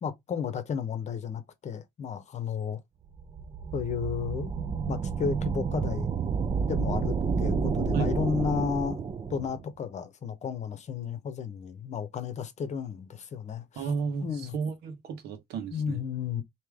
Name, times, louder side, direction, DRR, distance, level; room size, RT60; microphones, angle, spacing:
voice 1, 0.0-2.8 3.7-4.5 4.9-6.1 6.7-9.0 9.3-13.9 14.2-14.6 15.7-16.4, left 7 dB, 45° left, 0.9 m, -33 dB
sound 1, 3.1-9.6, right 5 dB, 30° right, 0.5 m, -30 dB
voice 2, 13.8-14.3 14.5-16.0, right 5 dB, 75° right, 1.3 m, -32 dB
3.2 x 2.9 x 3.5 m
cardioid pair, 110°, 17 cm